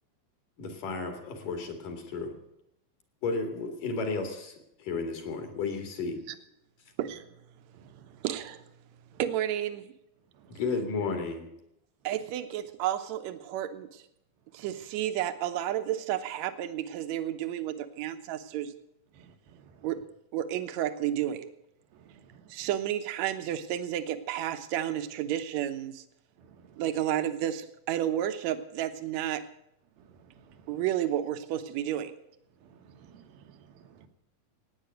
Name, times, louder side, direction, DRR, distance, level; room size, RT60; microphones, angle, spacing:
voice 1, 0.6-2.3 3.2-6.2 10.5-11.5, left 4 dB, 65° left, 5 dB, 3.7 m, -33 dB
voice 2, 8.2-8.7 9.2-9.9 12.0-14.0 14.5-18.7 19.8-20.0 20.3-21.5 22.5-26.0 26.8-29.5 30.7-32.2, right 11 dB, 65° right, 10 dB, 1.9 m, -31 dB
voice 3, 22.1-22.4 26.4-26.7 30.5-30.6 32.6-32.7 33.0-33.4 33.7-34.1, right 7 dB, 85° right, 7 dB, 3.1 m, -56 dB
17.0 x 9.5 x 7.8 m, 0.80 s
omnidirectional pair, 4.1 m